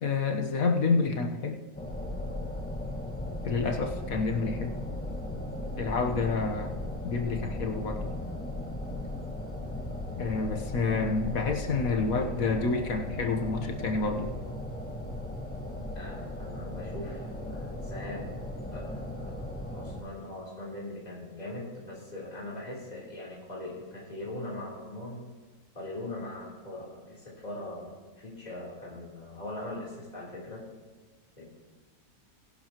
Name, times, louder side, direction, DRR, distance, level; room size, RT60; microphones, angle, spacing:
voice 1, 0.0-1.6 3.4-4.7 5.8-6.7 7.0-8.1 10.2-14.3, left 4 dB, 70° left, 3 dB, 1.7 m, -28 dB
sound 1, 1.7-20.0, left 1 dB, 5° left, 1.6 m, -37 dB
voice 2, 15.9-18.3 18.7-19.4 19.7-25.2 25.7-30.6 31.4-31.5, left 1 dB, 30° left, -5 dB, 3.8 m, -41 dB
21.0 x 11.0 x 3.0 m, 1.4 s
omnidirectional pair, 1.5 m